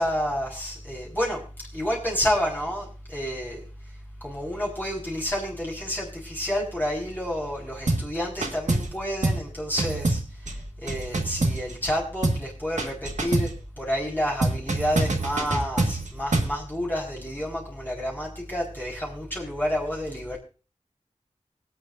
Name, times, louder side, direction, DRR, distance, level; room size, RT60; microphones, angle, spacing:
voice 1, 0.0-1.4 1.7-3.6 4.2-10.2 10.8-13.5 13.8-20.4, equal, 15° left, -5 dB, 4.4 m, -29 dB
sound 1, 7.9-8.1 8.4-9.0 9.2-9.5 9.8-11.9 12.2-12.5 12.8-13.6 14.4-16.6, right 2 dB, 75° right, 1.7 m, -26 dB
24.0 x 8.2 x 2.6 m, 0.34 s
wide cardioid pair, 70°, 13 cm